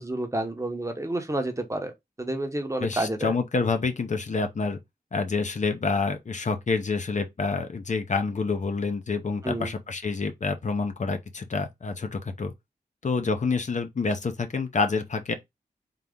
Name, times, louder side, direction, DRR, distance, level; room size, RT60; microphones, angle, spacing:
voice 1, 0.0-1.9 2.2-3.3 9.4-9.7, right 1 dB, 20° right, 0.8 m, -29 dB
voice 2, 2.8-4.8 5.1-12.5 13.0-15.3, left 4 dB, 50° left, 0.7 m, -27 dB
3.8 x 2.9 x 3.5 m
wide cardioid pair, 115°, 16 cm